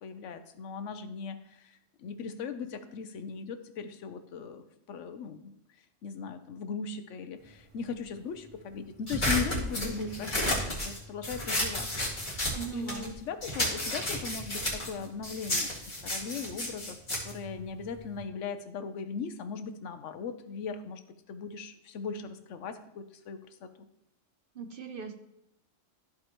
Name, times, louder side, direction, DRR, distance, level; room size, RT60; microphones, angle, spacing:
voice 1, 0.0-5.5 6.0-11.9 12.2-12.4 12.7-15.7 16.0-17.0 17.2-21.0 21.3-23.9, left 6 dB, 75° left, 9 dB, 1.0 m, -38 dB
siscors cutting paper, 9.1-13.1 13.4-18.2, left 1 dB, 40° left, 2.4 m, -32 dB
voice 2, 12.5-13.1 24.5-25.1, right 6 dB, 50° right, 5 dB, 0.8 m, -39 dB
14.0 x 4.8 x 3.0 m, 0.84 s
omnidirectional pair, 1.3 m